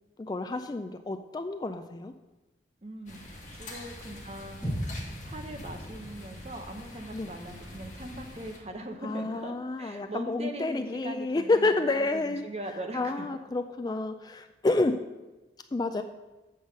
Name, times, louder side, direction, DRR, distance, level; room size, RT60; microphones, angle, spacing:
voice 1, 0.2-2.1 7.1-7.3 9.0-12.5 12.9-15.0 15.7-16.0, left 2 dB, 20° left, 7 dB, 0.3 m, -29 dB
voice 2, 2.8-4.7 5.2-13.3, right 1 dB, 35° right, 4 dB, 0.9 m, -41 dB
sound 1, 3.1-8.6, left 1 dB, 45° left, 1.7 m, -45 dB
sound 2, 4.6-9.0, equal, 5° right, 3.0 m, -40 dB
8.0 x 5.4 x 6.4 m, 1.1 s
head